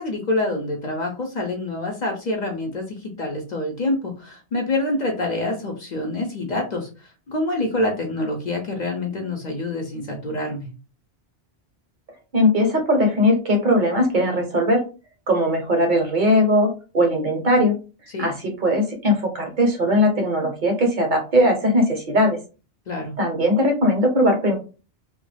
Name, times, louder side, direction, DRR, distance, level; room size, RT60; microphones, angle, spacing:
voice 1, 0.0-6.9 7.3-10.7 18.1-18.3 22.9-23.1, left 2 dB, 50° left, 1 dB, 0.6 m, -26 dB
voice 2, 12.3-14.8 15.3-17.7 18.2-18.3 18.6-22.4 23.2-24.6, left 1 dB, 55° right, 3 dB, 0.7 m, -19 dB
2.2 x 2.1 x 3.2 m, 0.33 s
omnidirectional pair, 1.1 m